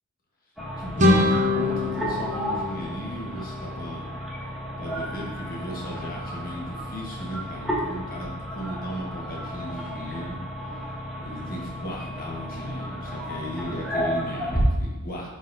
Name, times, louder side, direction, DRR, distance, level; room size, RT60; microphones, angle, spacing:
sound 1, 0.6-14.6, equal, ahead, 1.0 m, -33 dB
voice 1, 0.8-4.1 4.8-10.4 11.2-15.3, equal, 40° left, -3 dB, 1.3 m, -36 dB
sound 2, 1.0-3.7, left 2 dB, 35° right, 0.7 m, -24 dB
9.4 x 3.9 x 2.7 m, 1.1 s
head